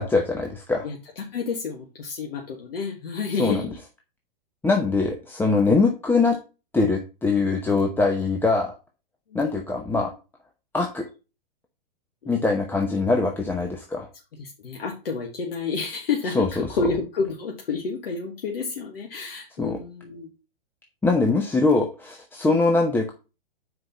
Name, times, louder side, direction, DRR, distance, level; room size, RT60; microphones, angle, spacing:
voice 1, 0.0-0.9 3.4-3.6 4.6-6.4 6.7-8.7 9.3-10.1 10.7-11.1 12.3-14.1 16.3-16.5 19.6-19.8 21.0-23.1, left 3 dB, 5° left, 2 dB, 0.8 m, -22 dB
voice 2, 0.8-3.8 9.3-9.4 12.2-12.4 14.4-20.3, left 5 dB, 80° left, 1 dB, 1.7 m, -30 dB
6.1 x 4.8 x 5.5 m, 0.31 s
hypercardioid pair, 125°, 29 cm